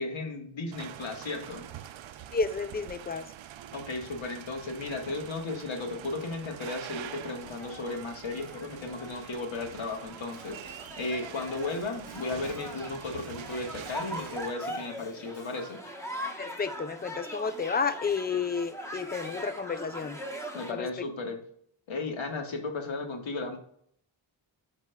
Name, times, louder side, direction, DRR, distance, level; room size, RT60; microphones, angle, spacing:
voice 1, 0.0-1.7 3.7-15.8 20.5-21.4 21.9-23.6, left 3 dB, 70° left, 3 dB, 1.4 m, -35 dB
sound 1, 0.7-14.5, right 11 dB, 75° right, 0.6 m, -45 dB
voice 2, 2.3-3.3 16.4-20.2 20.7-20.9, left 5 dB, 20° left, 12 dB, 0.3 m, -31 dB
sound 2, 7.2-20.7, equal, 5° left, 1.0 m, -42 dB
Keyboard (musical), 10.3-16.0, left 3 dB, 55° left, 2.1 m, -56 dB
11.5 x 4.1 x 2.2 m, 0.65 s
wide cardioid pair, 155°, 48 cm